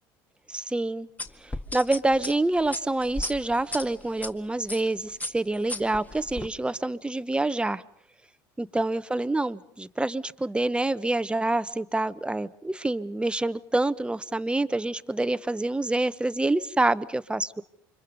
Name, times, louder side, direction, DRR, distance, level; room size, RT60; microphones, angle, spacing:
voice 1, 0.5-1.1 1.4-7.8 8.6-17.6, right 2 dB, 10° right, 13 dB, 1.1 m, -27 dB
sound 1, 1.2-4.3 4.7-4.9 5.2-6.5, left 2 dB, 15° left, 1.9 m, -35 dB
29.5 x 25.0 x 5.4 m, 0.66 s
hypercardioid pair, 80°, 10 cm